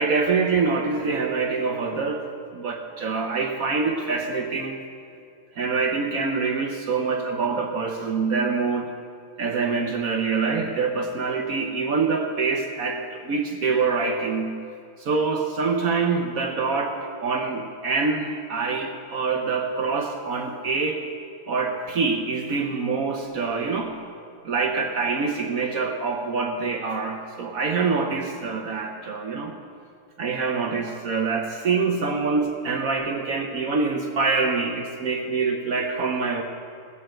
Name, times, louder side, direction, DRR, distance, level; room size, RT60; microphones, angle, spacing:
voice 1, 0.0-4.8 5.6-8.9 9.4-14.6 15.0-21.1 21.5-24.0 24.4-29.5 30.2-36.4, right 4 dB, 60° right, 4 dB, 0.9 m, -25 dB
16.0 x 6.9 x 7.6 m, 2.4 s
omnidirectional pair, 2.4 m